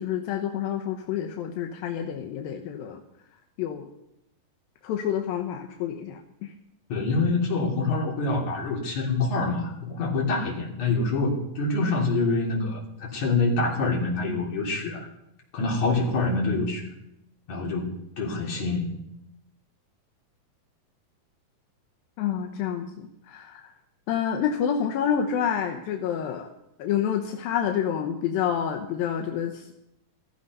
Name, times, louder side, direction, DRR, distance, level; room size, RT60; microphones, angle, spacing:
voice 1, 0.0-3.0 3.6-3.9 4.8-6.2 22.2-23.6 24.1-26.5 26.8-29.7, left 8 dB, 85° left, 4 dB, 2.7 m, -28 dB
voice 2, 6.9-15.1 15.5-16.9 17.5-17.9 18.2-18.8, left 3 dB, 55° left, -2 dB, 4.4 m, -26 dB
15.5 x 15.0 x 5.5 m, 0.85 s
omnidirectional pair, 4.1 m